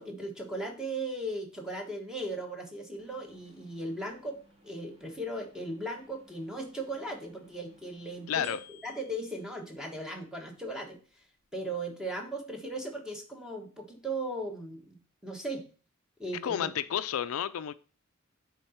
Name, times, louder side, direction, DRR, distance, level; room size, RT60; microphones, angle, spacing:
voice 1, 0.0-4.4 4.6-8.6 8.8-11.0 11.5-15.7 16.2-16.7, right 1 dB, 5° right, 2 dB, 1.4 m, -37 dB
sound 1, 3.0-11.9, left 1 dB, 30° right, 1.9 m, -59 dB
voice 2, 8.3-8.6 16.4-17.7, left 9 dB, 80° left, 14 dB, 0.4 m, -31 dB
9.5 x 3.9 x 4.3 m, 0.37 s
head